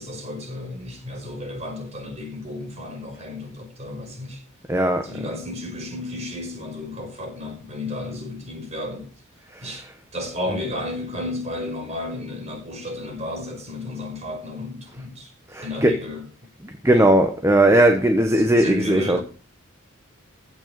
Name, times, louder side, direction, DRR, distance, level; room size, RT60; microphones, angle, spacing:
voice 1, 0.0-4.4 5.0-9.1 9.6-9.9 10.1-15.3 15.6-16.2 16.9-17.1 18.3-19.2, left 1 dB, 30° right, 5.5 m, -33 dB
voice 2, 4.7-5.1 15.5-16.0 16.8-19.2, right 1 dB, 15° right, 1.3 m, -18 dB
16.0 x 6.6 x 7.0 m
head